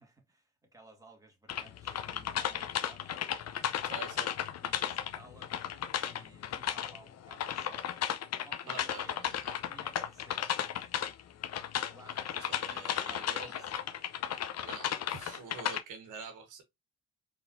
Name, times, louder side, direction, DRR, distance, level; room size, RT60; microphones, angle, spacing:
voice 1, 0.0-3.2 4.3-7.9 8.4-11.0 11.9-14.1, right 2 dB, 10° right, 2.1 m, -58 dB
sound 1, 1.5-15.8, left 10 dB, 60° left, 0.6 m, -35 dB
voice 2, 3.8-4.3 8.7-9.4 12.4-13.7 14.6-16.6, right 5 dB, 85° right, 1.3 m, -46 dB
4.2 x 3.9 x 2.6 m
cardioid pair, 90°, 30 cm